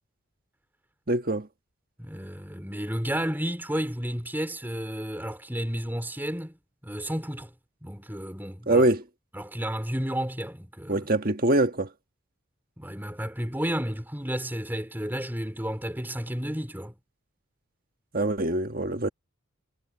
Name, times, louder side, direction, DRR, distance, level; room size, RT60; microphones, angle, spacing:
voice 1, 1.1-1.5 8.7-9.0 10.9-11.9 18.1-19.1, right 2 dB, 45° right, 1.6 m, -24 dB
voice 2, 2.0-6.5 6.8-7.5 7.8-8.9 9.3-11.0 12.8-17.0, equal, 10° right, 4.4 m, -32 dB
head